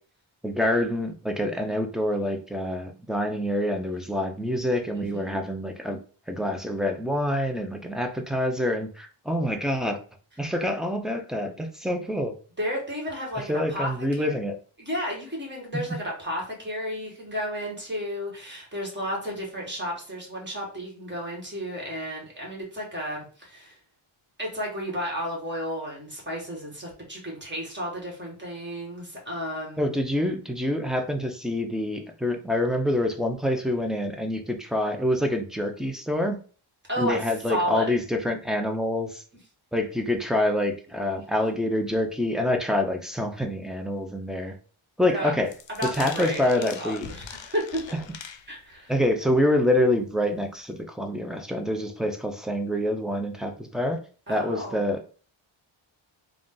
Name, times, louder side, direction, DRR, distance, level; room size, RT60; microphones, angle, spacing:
voice 1, 0.4-6.0 6.3-10.0 10.4-12.3 13.5-14.6 29.8-36.4 37.0-39.2 39.7-44.5 45.0-45.5 45.9-47.1 48.9-54.0 54.3-55.0, left 1 dB, ahead, 4 dB, 0.3 m, -26 dB
voice 2, 4.9-5.4 12.6-14.3 14.8-23.8 24.4-29.9 36.9-37.9 45.0-45.3 45.7-47.8 48.5-48.9 54.3-54.8, equal, 20° right, -3 dB, 1.6 m, -33 dB
sound 1, 45.5-48.8 49.2-49.5 49.9-50.0 50.3-50.4, left 8 dB, 65° left, 0.5 m, -42 dB
3.8 x 2.4 x 3.7 m, 0.40 s
wide cardioid pair, 160°, 50 cm